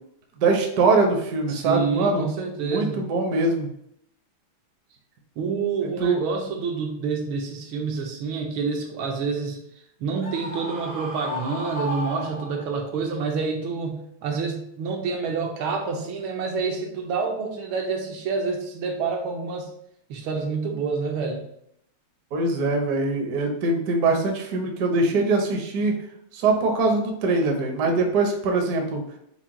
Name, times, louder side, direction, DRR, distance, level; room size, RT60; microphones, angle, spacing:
voice 1, 0.4-2.3 2.6-3.7 6.0-6.2 22.3-26.0 26.3-29.0, right 3 dB, 60° right, 2 dB, 1.0 m, -22 dB
voice 2, 1.5-3.1 5.4-9.6 10.0-19.7 20.1-21.4, right 5 dB, 80° right, 2 dB, 1.5 m, -28 dB
Screaming, 10.2-12.9, left 1 dB, 40° right, 0.5 m, -34 dB
5.8 x 2.2 x 3.6 m, 0.72 s
omnidirectional pair, 2.3 m